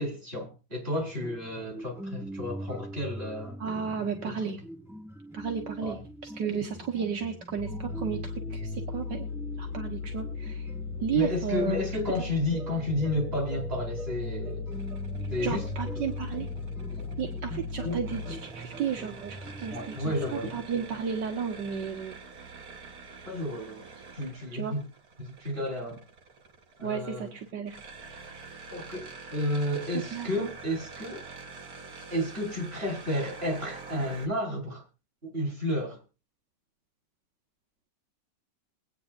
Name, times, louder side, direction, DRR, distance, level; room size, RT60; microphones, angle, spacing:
voice 1, 0.0-3.6 4.3-4.5 5.8-6.0 11.1-14.7 15.3-15.7 16.0-16.1 16.9-17.2 17.8-18.0 19.7-20.7 23.3-24.9 25.2-26.0 26.8-27.3 28.7-31.2 32.1-34.8 35.2-36.0, left 1 dB, 30° right, 5.3 m, -32 dB
sound 1, 0.9-20.4, right 1 dB, 5° right, 0.5 m, -43 dB
voice 2, 3.6-4.6 5.3-9.3 9.6-10.7 11.0-11.8 15.4-16.5 17.2-22.2 24.5-24.7 26.8-27.8 30.1-30.5, right 7 dB, 75° right, 2.0 m, -33 dB
sound 2, 7.6-18.4, left 4 dB, 35° left, 4.1 m, -37 dB
sound 3, 14.7-34.3, right 4 dB, 60° right, 2.1 m, -46 dB
23.0 x 8.9 x 2.6 m
omnidirectional pair, 1.9 m